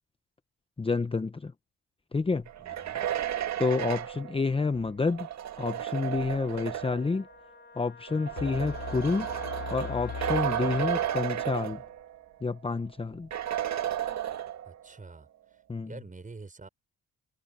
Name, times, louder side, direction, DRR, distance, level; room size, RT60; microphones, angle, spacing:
voice 1, 0.8-1.5 2.1-2.5 3.6-5.3 5.6-7.3 7.7-9.3 9.7-11.8 12.4-13.3 15.7-15.9, left 4 dB, 20° left, 0.8 m, -29 dB
sound 1, 2.5-7.2 8.1-12.2 12.6-12.7 13.3-14.9, right 10 dB, 65° right, 1.8 m, -33 dB
voice 2, 2.6-3.0 14.6-16.7, right 3 dB, 25° right, 6.4 m, -47 dB
Wind instrument woodwind instrument, 6.8-11.1, left 5 dB, 35° left, 4.2 m, -48 dB
sound 2, 8.4-11.4, left 10 dB, 70° left, 2.4 m, -40 dB
cardioid pair, 90°, 30 cm